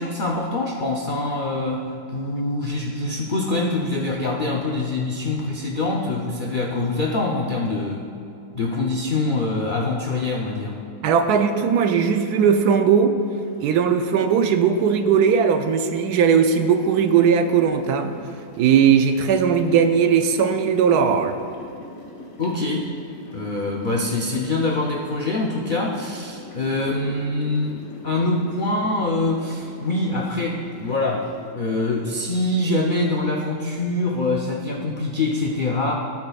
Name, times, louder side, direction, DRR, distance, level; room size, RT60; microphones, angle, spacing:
voice 1, 0.0-8.1 8.5-10.8 22.4-22.9 23.3-31.3 31.5-35.9, left 2 dB, 75° left, -1 dB, 0.4 m, -24 dB
voice 2, 11.0-13.2 13.6-18.1 18.6-21.4, right 7 dB, 70° right, 7 dB, 1.0 m, -18 dB
sound 1, 13.2-31.5, left 2 dB, 45° left, 1.4 m, -43 dB
16.5 x 8.4 x 2.4 m, 2.7 s
omnidirectional pair, 1.9 m